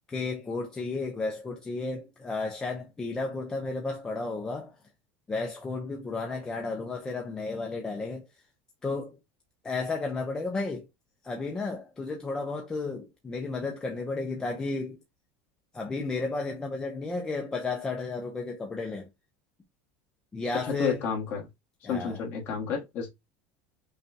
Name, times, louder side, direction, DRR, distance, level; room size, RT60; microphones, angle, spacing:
voice 1, 0.1-4.8 5.3-8.3 8.8-9.2 9.6-10.9 11.2-15.0 15.7-19.1 20.3-21.0 21.8-22.2, left 3 dB, 10° left, 0.5 m, -33 dB
voice 2, 20.6-21.5 21.8-23.1, left 6 dB, 35° left, 1.4 m, -31 dB
5.4 x 2.2 x 2.6 m
cardioid pair, 170°, 6 cm